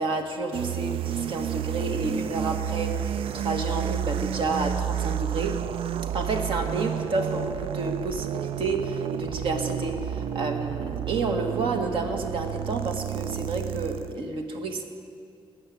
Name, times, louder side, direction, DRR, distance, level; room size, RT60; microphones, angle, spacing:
voice 1, 0.0-5.6 6.1-14.9, right 3 dB, 70° right, 4 dB, 1.5 m, -30 dB
sound 1, 0.5-14.2, right 10 dB, 85° right, 0.4 m, -31 dB
19.0 x 6.6 x 9.5 m, 2.3 s
wide cardioid pair, 160°, 9 cm